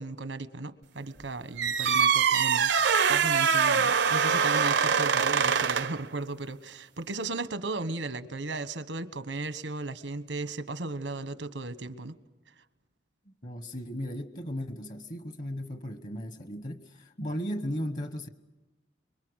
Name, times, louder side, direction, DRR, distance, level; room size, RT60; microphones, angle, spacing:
voice 1, 0.0-2.7 3.1-12.1, right 3 dB, 90° right, 1.3 m, -36 dB
sound 1, 1.6-6.0, right 6 dB, 70° right, 0.7 m, -24 dB
voice 2, 13.3-18.3, equal, 45° left, 1.2 m, -36 dB
25.0 x 23.0 x 6.4 m
head